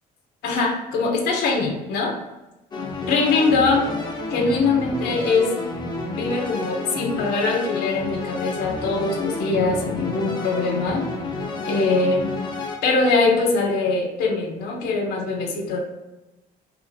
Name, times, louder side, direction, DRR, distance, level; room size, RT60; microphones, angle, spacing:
voice 1, 0.4-2.2 3.0-3.9 4.3-5.5 6.1-11.0 11.7-12.3 12.8-15.8, left 3 dB, 80° left, 1 dB, 0.7 m, -22 dB
sound 1, 2.7-12.8, left 3 dB, 25° left, 0.6 m, -30 dB
2.9 x 2.5 x 3.9 m, 1.0 s
cardioid pair, 110°, 17 cm